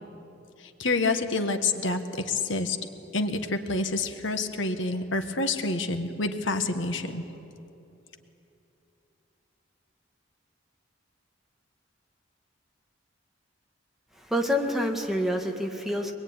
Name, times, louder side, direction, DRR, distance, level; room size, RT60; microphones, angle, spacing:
voice 1, 0.8-2.0 2.2-2.8 3.1-7.2, left 3 dB, 80° left, 7 dB, 1.6 m, -27 dB
voice 2, 14.1-16.1, left 1 dB, ahead, 2 dB, 1.8 m, -27 dB
24.5 x 21.0 x 9.7 m, 2.9 s
head